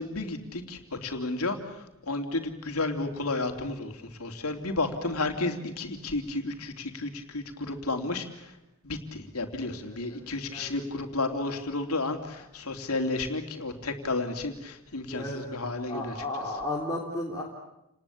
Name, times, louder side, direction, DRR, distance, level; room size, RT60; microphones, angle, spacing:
voice 1, 0.0-8.5 8.8-16.2, left 2 dB, 90° left, 5 dB, 3.3 m, -32 dB
voice 2, 9.8-10.7 15.1-15.5 15.9-17.4, left 1 dB, 15° left, -4 dB, 3.7 m, -34 dB
29.5 x 20.0 x 8.7 m, 0.86 s
head